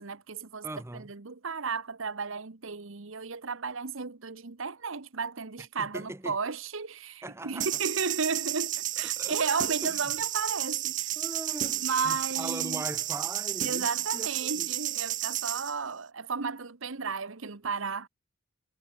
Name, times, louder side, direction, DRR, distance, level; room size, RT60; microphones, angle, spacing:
voice 1, 0.0-0.7 0.9-11.2 11.8-12.8 13.6-18.1, right 5 dB, 65° right, 1.1 m, -34 dB
voice 2, 0.6-1.1 5.8-6.4 7.2-7.7 9.2-9.5 9.8-10.1 11.2-14.7, right 1 dB, 10° right, 0.8 m, -40 dB
sound 1, 7.6-15.7, right 13 dB, 35° right, 0.5 m, -32 dB
head